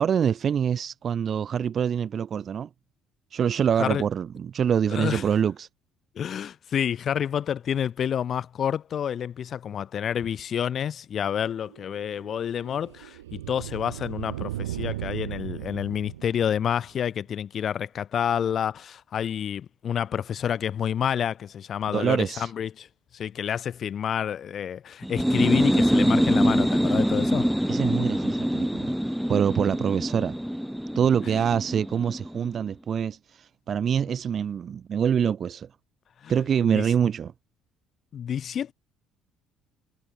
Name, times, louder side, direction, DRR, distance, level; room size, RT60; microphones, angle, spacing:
voice 1, 0.0-2.7 3.3-5.7 21.9-22.5 27.7-28.9 29.3-30.4 31.0-35.7 36.3-37.3, right 8 dB, 50° right, 3.4 m, -25 dB
voice 2, 4.9-5.2 6.1-22.9 23.1-27.5 36.2-36.3 36.6-36.9 38.1-38.7, left 9 dB, 50° left, 4.8 m, -29 dB
sound 1, 11.7-17.0, right 14 dB, 85° right, 1.7 m, -37 dB
sound 2, 25.0-32.5, equal, ahead, 1.0 m, -24 dB
hypercardioid pair, 55°, 0 cm